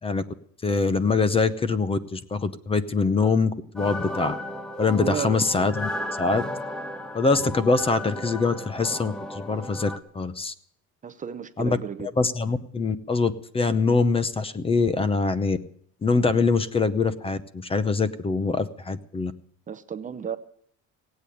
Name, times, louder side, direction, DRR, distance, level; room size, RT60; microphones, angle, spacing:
voice 1, 0.6-4.3 4.8-5.9 6.2-6.4 7.1-10.5 11.6-15.6 16.0-19.3, left 4 dB, 20° left, 0.7 m, -24 dB
sound 1, 3.8-10.0, left 1 dB, 5° left, 1.1 m, -34 dB
voice 2, 5.0-5.4 11.0-12.1 19.7-20.4, right 8 dB, 25° right, 0.7 m, -32 dB
17.5 x 8.6 x 9.2 m
cardioid pair, 140°, 31 cm